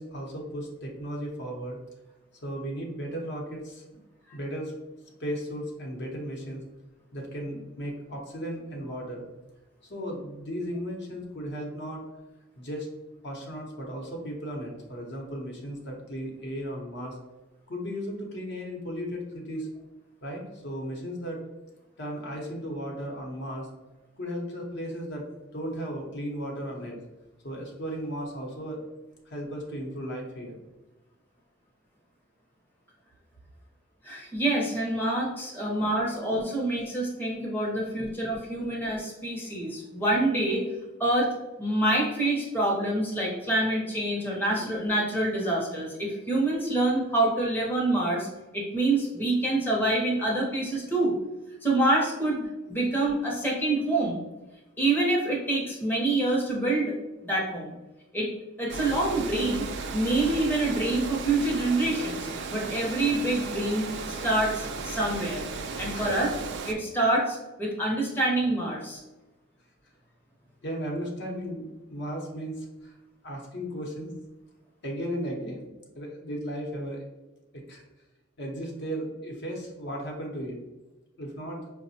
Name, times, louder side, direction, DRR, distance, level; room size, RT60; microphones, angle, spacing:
voice 1, 0.0-1.8 2.4-3.8 4.3-4.7 5.2-6.6 7.1-9.2 9.9-12.1 12.6-12.9 13.2-17.2 17.7-19.7 20.2-21.4 22.0-23.7 24.2-25.2 25.5-27.0 27.4-28.8 29.2-30.6 36.2-36.5 37.7-37.9 44.6-44.7 52.3-52.5 65.9-66.1 70.6-73.0 73.2-74.1 74.8-75.7 75.9-77.0 77.5-77.8 78.4-80.6 81.2-81.6, equal, 55° left, 0 dB, 0.7 m, -35 dB
voice 2, 34.0-40.6 41.0-41.3 41.6-48.3 48.5-51.1 51.6-52.4 52.7-54.2 54.8-56.9 57.2-57.7 58.1-58.3 58.6-59.6 59.9-65.4 65.8-66.3 66.6-69.0, right 2 dB, 10° left, -4 dB, 0.6 m, -26 dB
Water, 58.7-66.7, right 4 dB, 55° right, 0.4 m, -35 dB
4.8 x 2.1 x 2.7 m, 1.1 s
head